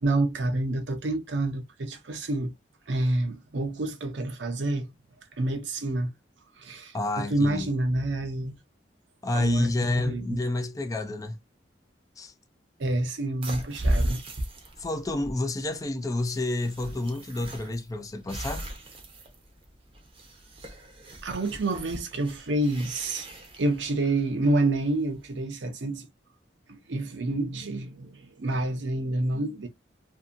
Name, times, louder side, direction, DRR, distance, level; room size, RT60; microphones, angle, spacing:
voice 1, 0.0-2.5 2.9-4.9 5.4-6.1 6.6-8.6 9.3-10.4 12.8-14.2 20.6-20.7 21.2-23.3 23.6-26.1 26.7-29.7, right 2 dB, 70° right, 0.6 m, -28 dB
voice 2, 6.9-7.7 9.2-11.4 12.2-12.3 14.8-18.6, left 2 dB, 20° left, 0.3 m, -29 dB
sound 1, 13.4-25.3, right 1 dB, 30° right, 0.6 m, -35 dB
2.6 x 2.6 x 2.5 m
head